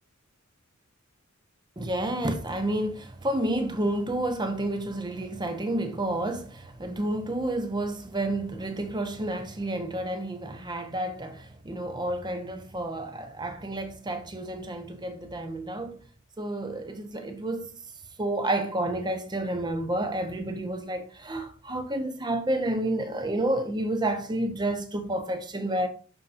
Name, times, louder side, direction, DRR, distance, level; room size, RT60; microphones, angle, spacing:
voice 1, 1.8-16.0 16.4-17.7 18.2-25.9, right 1 dB, 20° right, 0.9 m, -30 dB
11.0 x 4.3 x 2.6 m
head